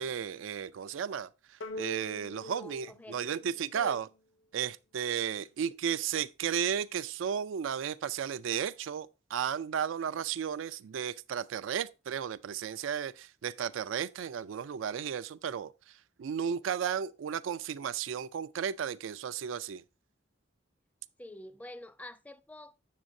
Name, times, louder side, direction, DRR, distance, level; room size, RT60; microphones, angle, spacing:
voice 1, 0.0-4.1 4.5-19.8, right 8 dB, 85° right, 0.4 m, -34 dB
sound 1, 1.6-4.2, left 1 dB, 85° left, 0.6 m, -44 dB
voice 2, 2.4-3.4 3.7-4.0 21.2-22.8, left 1 dB, 10° left, 0.3 m, -48 dB
7.5 x 7.1 x 2.6 m
head